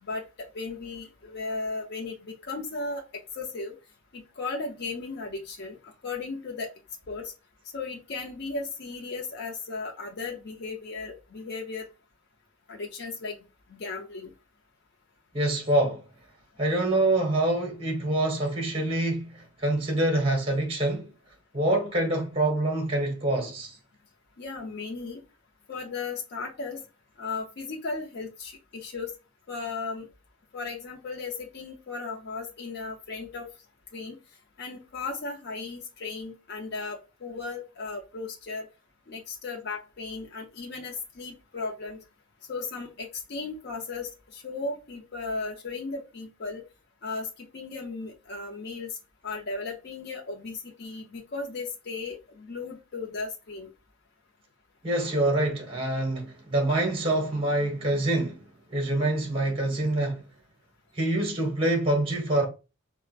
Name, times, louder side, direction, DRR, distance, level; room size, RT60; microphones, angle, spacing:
voice 1, 0.0-3.7 4.1-6.7 7.1-7.3 7.7-11.9 12.7-13.4 13.7-14.3 24.4-25.2 25.7-26.8 27.2-29.1 29.5-30.1 30.5-33.5 33.9-34.2 34.6-38.7 39.1-42.0 42.5-46.6 47.0-49.0 49.2-53.7, left 3 dB, 55° left, 0.6 m, -36 dB
voice 2, 15.3-16.0 16.6-19.3 19.6-21.1 21.5-23.7 54.8-58.4 58.7-60.2 61.0-62.5, right 1 dB, 25° right, 0.9 m, -25 dB
4.5 x 2.1 x 2.4 m
head